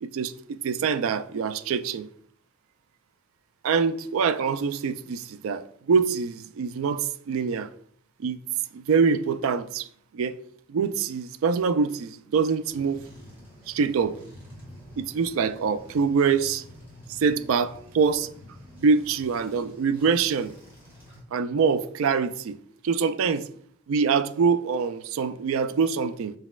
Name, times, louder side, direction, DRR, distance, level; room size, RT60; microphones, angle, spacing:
voice 1, 0.0-2.1 3.6-7.7 8.2-8.4 8.7-9.9 10.1-10.3 10.7-13.0 13.7-14.2 15.0-16.6 17.1-18.3 18.8-20.5 21.3-22.6 22.8-23.5 23.9-26.3, right 5 dB, 80° right, 0.3 m, -24 dB
sound 1, 12.7-21.2, equal, 10° right, 1.7 m, -48 dB
5.2 x 4.0 x 2.3 m
head